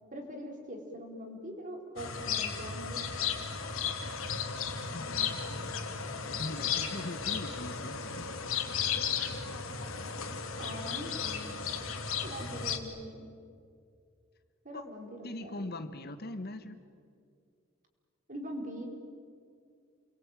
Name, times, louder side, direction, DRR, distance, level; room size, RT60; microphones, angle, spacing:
voice 1, 0.1-3.0 10.5-11.5 12.1-13.3 14.6-15.8 18.3-18.9, equal, 40° right, 2 dB, 4.4 m, -43 dB
sound 1, 2.0-12.8, left 6 dB, 80° left, 2.8 m, -35 dB
voice 2, 4.9-5.8 6.3-9.5 14.7-14.8 15.2-16.8, left 2 dB, 50° left, 10 dB, 1.3 m, -42 dB
29.5 x 22.0 x 9.0 m, 2.3 s
head